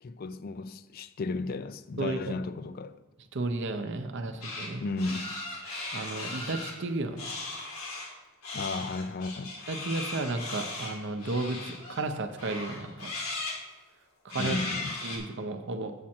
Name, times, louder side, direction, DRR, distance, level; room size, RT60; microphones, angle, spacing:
voice 1, 0.0-3.0 4.8-5.4 8.5-9.6 14.4-15.0, left 3 dB, 45° left, 0.4 m, -34 dB
voice 2, 2.0-2.4 3.3-4.8 5.9-7.3 9.7-13.1 14.2-14.6 15.0-15.9, right 2 dB, 55° right, 0.6 m, -33 dB
sound 1, 4.4-4.7 5.0-6.7 7.2-8.1 8.4-12.1 12.4-13.6 14.3-15.2, left 2 dB, 80° left, 2.0 m, -37 dB
7.4 x 7.3 x 4.3 m
head